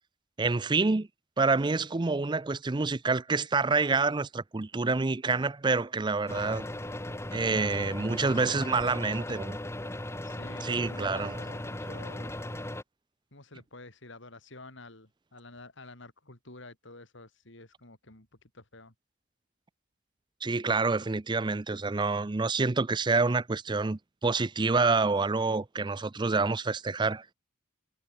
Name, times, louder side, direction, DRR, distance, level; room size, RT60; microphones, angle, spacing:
voice 1, 0.4-1.1 1.4-6.7 7.3-9.6 10.6-11.4 20.4-27.2, right 3 dB, 20° right, 0.5 m, -27 dB
sound 1, 6.3-12.8, left 1 dB, 15° left, 1.3 m, -37 dB
voice 2, 8.1-9.2 10.2-12.3 13.3-18.3 18.5-18.9, left 2 dB, 60° left, 3.9 m, -49 dB
head